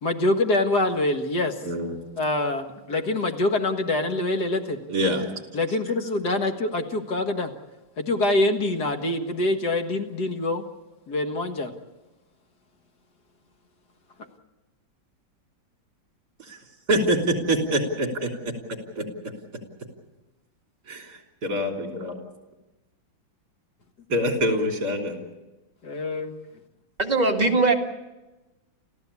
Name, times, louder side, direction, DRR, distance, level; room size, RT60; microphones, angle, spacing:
voice 1, 0.0-1.7 2.2-4.8 5.5-7.5 8.0-10.6 11.1-11.7 25.8-26.3, left 2 dB, 55° left, 5 dB, 2.2 m, -25 dB
voice 2, 1.7-2.0 4.9-5.3 16.4-16.6 16.9-18.5 19.0-19.1 20.9-22.1 24.1-25.2, equal, 55° right, 2 dB, 4.0 m, -25 dB
voice 3, 27.0-27.7, right 3 dB, 20° right, 0 dB, 2.2 m, -20 dB
29.5 x 14.5 x 8.4 m, 1.1 s
omnidirectional pair, 2.1 m